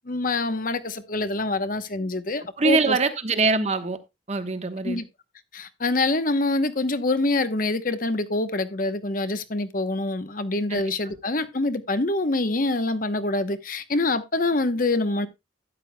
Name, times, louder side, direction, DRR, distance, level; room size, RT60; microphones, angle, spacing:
voice 1, 0.1-3.0 4.8-5.0 5.5-15.3, left 2 dB, 45° left, 0.9 m, -25 dB
voice 2, 2.6-4.0 4.3-5.0 10.7-10.8, right 4 dB, 35° right, 1.1 m, -23 dB
12.5 x 9.8 x 2.2 m
head